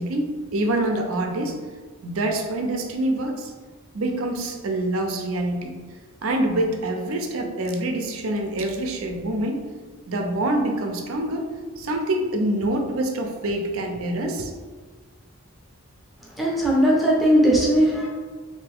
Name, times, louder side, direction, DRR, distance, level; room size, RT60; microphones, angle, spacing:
voice 1, 0.0-1.5 2.0-3.5 3.9-5.7 6.2-9.6 10.1-11.5 11.8-14.5, right 1 dB, 70° right, 3 dB, 0.5 m, -25 dB
voice 2, 16.4-18.1, equal, ahead, -5 dB, 0.6 m, -18 dB
3.3 x 2.7 x 3.4 m, 1.4 s
head